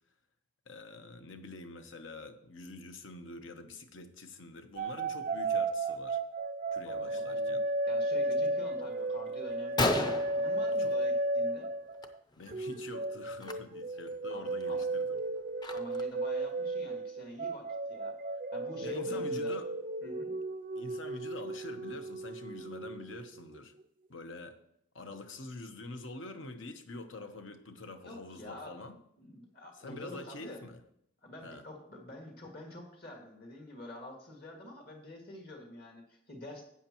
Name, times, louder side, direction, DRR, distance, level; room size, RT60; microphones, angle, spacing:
voice 1, 0.7-6.2 6.7-7.6 8.4-8.5 10.8-10.9 12.4-15.2 18.8-19.7 20.8-23.7 24.1-24.6 24.9-29.0 29.8-30.8 31.4-31.6, left 2 dB, 80° left, 8 dB, 0.9 m, -46 dB
sound 1, 4.8-12.2 12.5-23.6, right 2 dB, 45° right, 0.4 m, -34 dB
voice 2, 6.9-7.6 7.9-11.7 14.3-14.8 15.7-18.2 18.5-19.6 20.0-20.3 28.0-28.8 29.2-30.7 31.2-36.6, left 1 dB, 55° left, 2 dB, 2.1 m, -47 dB
Gunshot gunfire, 9.1-9.2 9.5-9.6 9.8-11.4 11.7-12.1 12.3-12.5 13.3-13.5 14.1-14.2 14.6-16.2, left 2 dB, 20° left, 0.6 m, -34 dB
12.5 x 8.5 x 3.0 m, 0.73 s
head